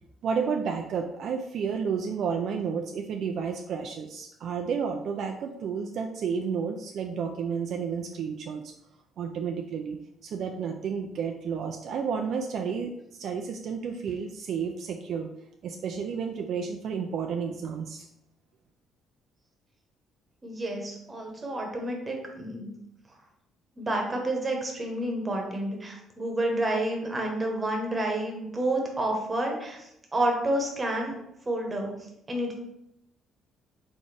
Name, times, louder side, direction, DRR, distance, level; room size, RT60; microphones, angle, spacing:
voice 1, 0.2-8.7 9.2-15.3 15.6-18.1, right 6 dB, 60° right, 4 dB, 0.3 m, -31 dB
voice 2, 20.4-22.7 23.8-31.1 31.5-31.9 32.3-32.5, right 1 dB, 20° right, 1 dB, 1.0 m, -29 dB
4.1 x 3.7 x 3.3 m, 0.81 s
cardioid pair, 130°, 0 cm